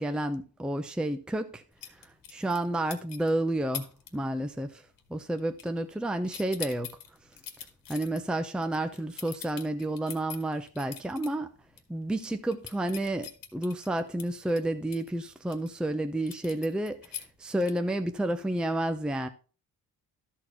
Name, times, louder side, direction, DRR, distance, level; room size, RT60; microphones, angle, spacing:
voice 1, 0.0-1.6 2.3-4.8 5.1-6.9 7.9-11.5 11.9-17.1 17.4-19.3, right 1 dB, ahead, 0.6 m, -30 dB
sound 1, 1.8-2.7 2.9-3.3 3.7-4.1 4.4-4.7 5.0-6.0 6.3-11.3 11.7-11.8 12.1-15.7 16.3-17.9, left 9 dB, 65° left, 1.7 m, -43 dB
12.5 x 4.6 x 5.8 m
cardioid pair, 135°, 37 cm